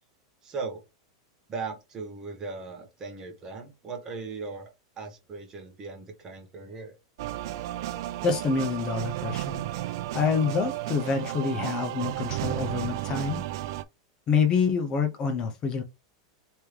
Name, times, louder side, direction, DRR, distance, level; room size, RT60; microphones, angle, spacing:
voice 1, 0.4-0.8 1.5-4.7 5.0-6.9, right 4 dB, 25° right, 1.3 m, -38 dB
sound 1, 7.2-13.8, right 14 dB, 65° right, 0.4 m, -33 dB
voice 2, 8.2-9.6 10.1-13.4 14.3-15.8, left 5 dB, 30° left, 0.6 m, -27 dB
3.4 x 3.2 x 3.1 m
supercardioid pair, 140°, 3 cm